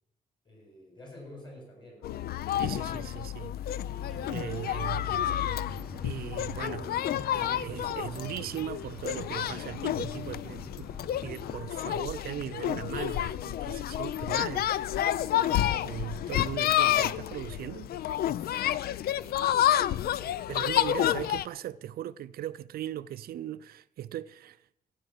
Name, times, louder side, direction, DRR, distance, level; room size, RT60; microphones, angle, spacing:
voice 1, 0.4-2.3 19.0-19.7 20.0-20.3, left 1 dB, 30° left, 7.3 m, -50 dB
sound 1, 2.0-21.5, left 12 dB, 80° left, 0.5 m, -30 dB
voice 2, 2.6-3.5 4.3-5.3 6.0-7.0 7.3-10.9 11.2-14.7 15.8-17.9 20.5-24.7, right 12 dB, 75° right, 0.5 m, -38 dB
sound 2, 3.9-11.7, right 1 dB, ahead, 1.1 m, -46 dB
16.0 x 8.9 x 7.2 m
wide cardioid pair, 145°, 16 cm